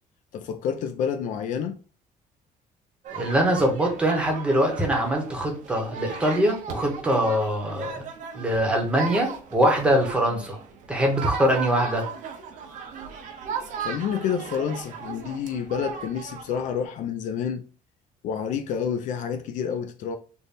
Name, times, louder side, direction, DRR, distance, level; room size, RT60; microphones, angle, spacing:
voice 1, 0.3-1.8 13.8-17.6 18.2-20.2, left 7 dB, 60° left, 0.4 m, -29 dB
sound 1, 3.0-16.8, right 6 dB, 60° right, 0.7 m, -37 dB
voice 2, 3.1-8.0 8.3-10.6 10.9-12.0, equal, 5° right, 0.8 m, -23 dB
3.4 x 2.1 x 4.0 m
cardioid pair, 170°, 15 cm